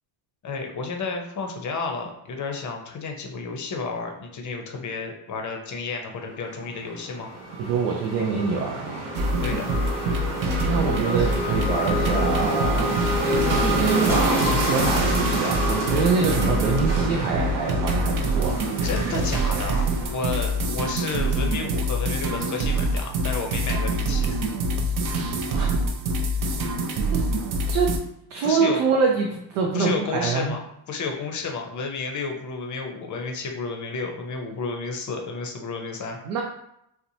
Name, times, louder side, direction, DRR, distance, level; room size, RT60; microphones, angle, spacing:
voice 1, 0.4-7.3 9.4-9.6 18.8-24.4 28.4-28.8 29.7-30.6 30.9-36.2, left 4 dB, 35° left, 3 dB, 0.6 m, -31 dB
sound 1, 6.6-20.9, right 1 dB, 70° right, 1.1 m, -28 dB
voice 2, 7.6-9.0 10.6-13.1 13.6-18.6 25.5-25.8 27.1-27.2 27.7-27.9 28.3-30.6 36.3-36.4, right 5 dB, 90° right, 0 dB, 0.5 m, -25 dB
sound 2, 9.2-28.0, right 1 dB, 40° right, 0.5 m, -25 dB
sound 3, 12.9-21.8, equal, 5° right, 0.7 m, -41 dB
2.8 x 2.1 x 2.6 m, 0.79 s
supercardioid pair, 80°, 50 cm